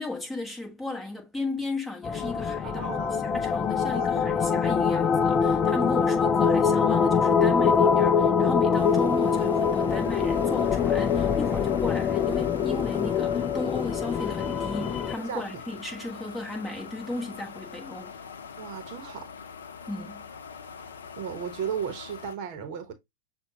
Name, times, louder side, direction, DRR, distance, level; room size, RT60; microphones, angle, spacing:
voice 1, 0.0-18.2 19.9-20.2, left 2 dB, 5° left, 1.3 m, -35 dB
sound 1, 2.0-15.1, left 6 dB, 25° left, 0.3 m, -24 dB
voice 2, 2.6-3.2 3.8-4.6 15.3-15.4 18.6-19.3 21.2-22.9, right 8 dB, 50° right, 0.9 m, -35 dB
sound 2, 8.8-22.4, left 6 dB, 75° left, 0.6 m, -42 dB
6.8 x 2.3 x 2.8 m
figure-of-eight pair, 95°, 0 cm